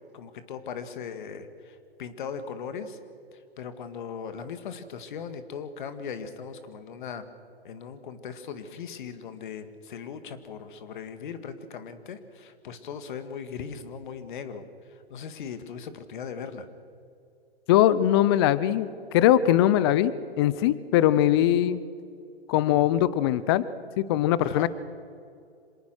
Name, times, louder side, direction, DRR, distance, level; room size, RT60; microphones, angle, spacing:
voice 1, 0.1-3.0 3.6-7.3 7.6-16.7 24.4-24.7, left 6 dB, 50° left, 10 dB, 2.1 m, -38 dB
voice 2, 17.7-20.1 20.4-21.8 22.5-23.6 24.0-24.7, left 12 dB, 25° left, 17 dB, 0.6 m, -21 dB
26.5 x 18.5 x 6.3 m, 2.4 s
hypercardioid pair, 135°, 32 cm